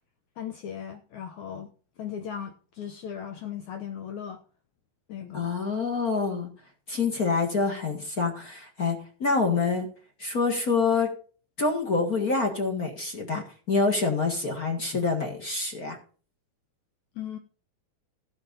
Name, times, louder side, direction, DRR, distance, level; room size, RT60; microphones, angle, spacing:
voice 1, 0.4-1.7 2.0-4.4 5.1-5.5 17.2-17.4, left 8 dB, 70° left, 1.8 m, -37 dB
voice 2, 5.3-6.5 6.9-9.9 10.2-11.1 11.6-16.0, left 4 dB, 35° left, 1.5 m, -26 dB
16.5 x 5.9 x 5.3 m
omnidirectional pair, 4.3 m